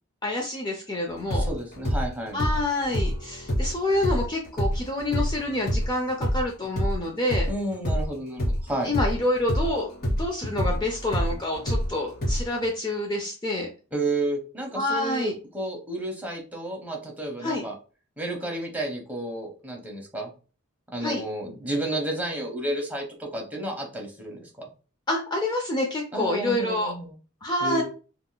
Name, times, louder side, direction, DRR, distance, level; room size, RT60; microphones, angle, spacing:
voice 1, 0.2-1.4 2.3-7.5 8.8-13.7 14.7-15.3 17.4-17.6 21.0-21.2 25.1-26.9 27.4-27.8, left 1 dB, 20° left, 1 dB, 0.4 m, -27 dB
sound 1, 1.1-8.1 8.4-12.7, equal, 45° left, 1.2 m, -27 dB
voice 2, 1.3-2.4 7.5-8.9 13.9-17.7 18.2-20.3 20.9-24.7 26.1-27.1 27.6-27.8, right 1 dB, 10° right, 0 dB, 0.7 m, -31 dB
3.6 x 2.4 x 2.2 m, 0.35 s
head